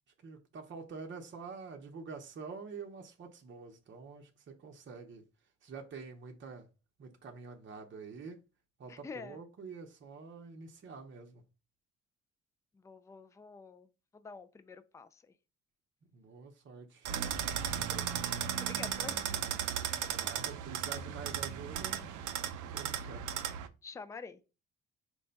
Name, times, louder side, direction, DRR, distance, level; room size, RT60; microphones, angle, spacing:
voice 1, 0.2-5.2 5.6-6.7 7.0-8.4 8.8-11.4 16.1-17.1 20.1-22.1 22.7-23.3, right 5 dB, 40° right, 0.7 m, -47 dB
voice 2, 8.9-9.4 12.7-15.3 17.8-20.2 20.8-20.9 23.8-24.5, left 4 dB, 10° left, 0.3 m, -49 dB
sound 1, 17.0-23.7, right 9 dB, 80° right, 0.5 m, -36 dB
4.6 x 2.2 x 3.9 m
cardioid pair, 90°, 30 cm